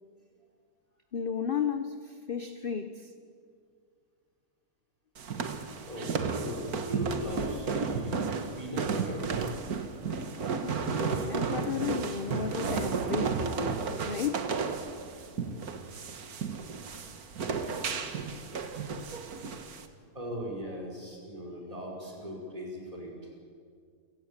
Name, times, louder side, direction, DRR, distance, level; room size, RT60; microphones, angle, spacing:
voice 1, 1.1-3.1 10.6-14.5, left 7 dB, 40° left, 9 dB, 0.9 m, -34 dB
sound 1, 5.2-19.9, right 5 dB, 65° right, 1.9 m, -33 dB
voice 2, 5.9-8.2 8.6-9.3 20.1-23.2, equal, 20° right, -1 dB, 5.4 m, -38 dB
29.0 x 16.5 x 8.8 m, 2.2 s
omnidirectional pair, 1.8 m